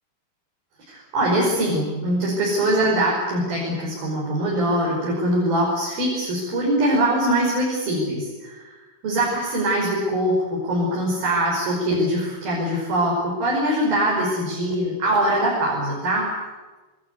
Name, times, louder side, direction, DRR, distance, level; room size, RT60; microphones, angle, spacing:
voice 1, 0.9-8.7 9.0-16.3, right 1 dB, 65° right, -4 dB, 7.4 m, -22 dB
26.5 x 22.0 x 8.4 m, 1.2 s
omnidirectional pair, 4.5 m